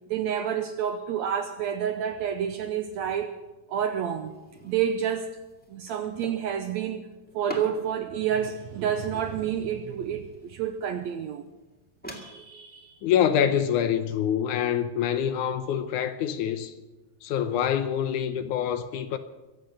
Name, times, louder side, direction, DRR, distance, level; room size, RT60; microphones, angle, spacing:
voice 1, 0.1-3.4 3.7-4.3 4.6-5.4 5.7-7.1 7.4-11.4 12.1-12.9, right 8 dB, 75° right, 1.7 m, -29 dB
sound 1, 4.0-12.2, equal, 5° left, 1.6 m, -46 dB
voice 2, 13.0-16.7 17.2-19.2, left 9 dB, 75° left, 2.1 m, -25 dB
24.0 x 8.1 x 6.4 m
omnidirectional pair, 3.9 m